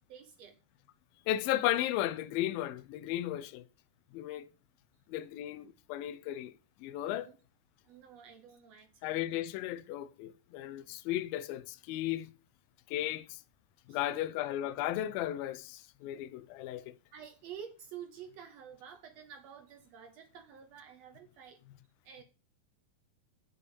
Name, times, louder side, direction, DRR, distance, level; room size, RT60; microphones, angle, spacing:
voice 1, 0.1-0.6 7.0-7.3 7.8-9.2 13.9-14.3 17.1-21.6 22.0-22.2, right 8 dB, 80° right, 1.5 m, -50 dB
voice 2, 1.3-3.6 4.1-4.4 5.1-6.5 6.8-7.3 9.0-12.3 12.9-13.4 13.9-16.9, left 13 dB, 80° left, 2.3 m, -35 dB
7.0 x 6.7 x 6.9 m
omnidirectional pair, 4.3 m